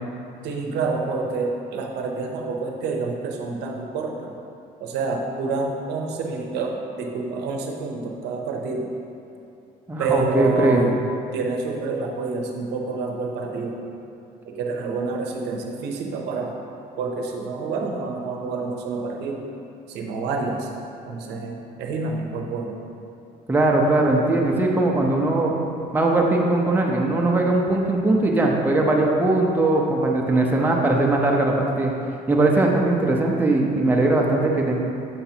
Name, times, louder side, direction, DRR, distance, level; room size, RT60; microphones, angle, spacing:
voice 1, 0.4-4.3 4.8-8.9 10.0-10.9 11.3-13.8 14.4-16.6 17.0-19.5 19.9-20.7 21.0-22.8, right 4 dB, 80° right, 1 dB, 0.7 m, -28 dB
voice 2, 9.9-10.9 23.5-25.5 25.9-31.9 32.3-34.8, right 2 dB, 10° right, -1 dB, 0.7 m, -20 dB
6.9 x 5.7 x 2.8 m, 2.8 s
cardioid pair, 110°, 17 cm